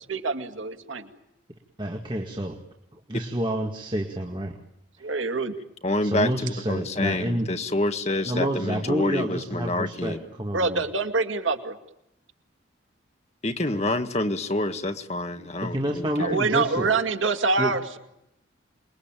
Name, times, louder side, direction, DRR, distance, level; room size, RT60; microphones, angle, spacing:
voice 1, 0.1-1.1 5.0-5.6 10.5-11.8 16.2-18.0, right 4 dB, 80° right, 6 dB, 2.3 m, -25 dB
voice 2, 1.8-2.6 2.9-4.5 5.0-5.1 6.0-7.5 8.2-10.8 13.7-13.8 15.4-16.9 17.6-17.7, right 1 dB, 25° right, 3 dB, 1.9 m, -29 dB
voice 3, 5.8-6.3 6.7-10.2 13.4-16.4, left 2 dB, 35° left, 7 dB, 1.7 m, -27 dB
28.0 x 21.5 x 9.0 m, 0.86 s
head